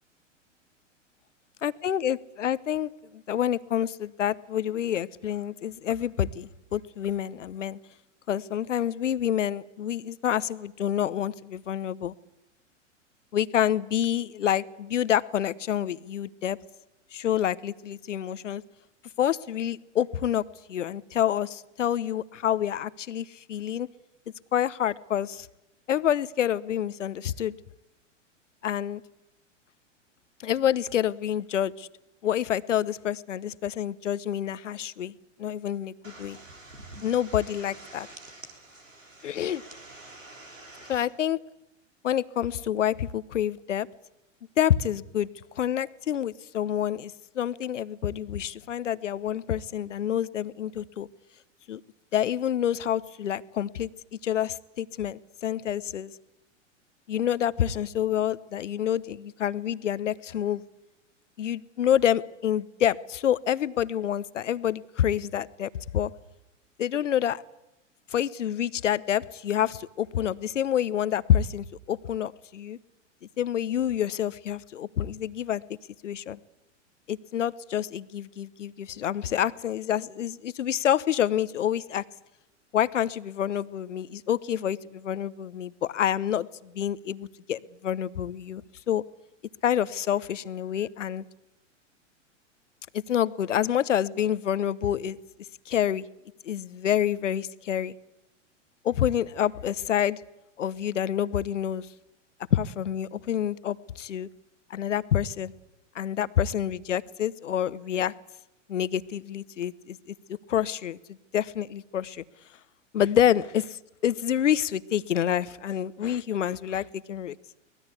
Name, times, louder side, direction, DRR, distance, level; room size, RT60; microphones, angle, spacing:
voice 1, 1.6-7.8 8.3-12.1 13.3-16.6 17.1-18.6 19.2-23.9 24.5-25.5 25.9-27.6 28.6-29.0 30.4-31.9 32.2-35.1 35.4-36.4 37.0-38.1 39.2-39.6 40.9-41.4 42.0-43.9 44.6-45.3 45.6-51.1 51.7-51.8 52.1-56.1 57.1-60.6 61.4-66.1 66.8-67.4 68.1-72.8 73.4-75.6 76.0-76.4 77.1-82.0 82.7-88.6 88.9-89.0 89.6-91.2 92.9-95.2 95.7-96.1 96.4-97.9 98.8-100.2 100.6-101.9 102.5-104.3 104.7-105.5 105.9-108.1 108.7-110.1 110.5-111.0 111.3-112.2 112.9-117.3, left 10 dB, 70° left, 17 dB, 1.0 m, -27 dB
sound 1, 36.0-41.1, right 2 dB, 90° right, 3.9 m, -47 dB
24.0 x 19.5 x 8.4 m, 0.92 s
figure-of-eight pair, 100°, 38 cm